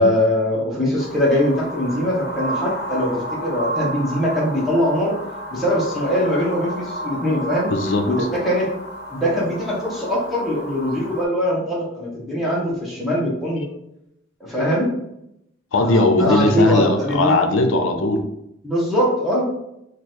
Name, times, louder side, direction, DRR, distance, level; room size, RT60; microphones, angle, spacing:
voice 1, 0.0-5.2 5.5-7.7 8.1-8.7 9.1-13.6 14.4-14.9 15.8-17.3 18.6-19.5, equal, ahead, -7 dB, 1.1 m, -21 dB
sound 1, 1.0-11.2, equal, 55° left, 0.7 m, -32 dB
voice 2, 7.7-8.1 13.6-13.8 15.7-18.2, left 2 dB, 90° left, 6 dB, 0.5 m, -19 dB
3.0 x 2.5 x 4.2 m, 0.80 s
head